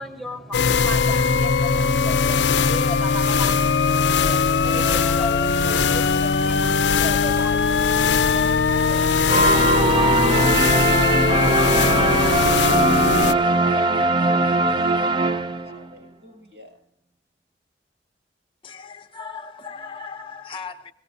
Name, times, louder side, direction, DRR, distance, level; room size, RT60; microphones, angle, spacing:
voice 1, 0.0-9.8, equal, ahead, 1 dB, 1.0 m, -36 dB
sound 1, 0.5-13.3, left 5 dB, 75° left, 0.5 m, -20 dB
sound 2, 9.3-15.9, right 2 dB, 25° right, 0.4 m, -20 dB
voice 2, 12.5-16.7, left 1 dB, 70° right, 2 dB, 6.7 m, -42 dB
voice 3, 18.6-20.9, left 5 dB, 30° left, 4 dB, 0.7 m, -37 dB
17.0 x 16.5 x 2.7 m, 0.72 s
head